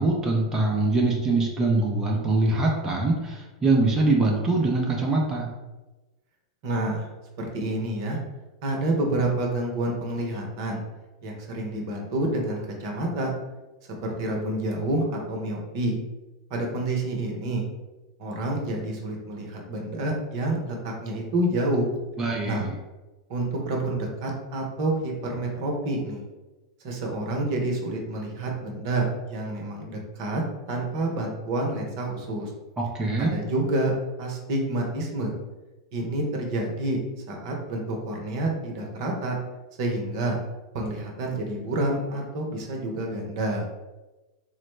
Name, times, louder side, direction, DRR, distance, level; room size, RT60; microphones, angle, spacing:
voice 1, 0.0-5.5 22.2-22.7 32.8-33.4, right 2 dB, 20° right, -1 dB, 0.6 m, -23 dB
voice 2, 6.6-7.1 7.4-8.2 8.6-10.8 11.2-13.3 14.0-16.0 16.5-17.6 18.2-21.9 22.4-22.7 23.3-26.2 26.8-32.5 33.2-33.9 34.2-35.3 35.9-37.0 37.3-39.4 39.8-40.4 40.7-43.6, right 2 dB, 55° right, 1 dB, 0.8 m, -28 dB
3.9 x 2.0 x 3.2 m, 1.1 s
hypercardioid pair, 100°, 2 cm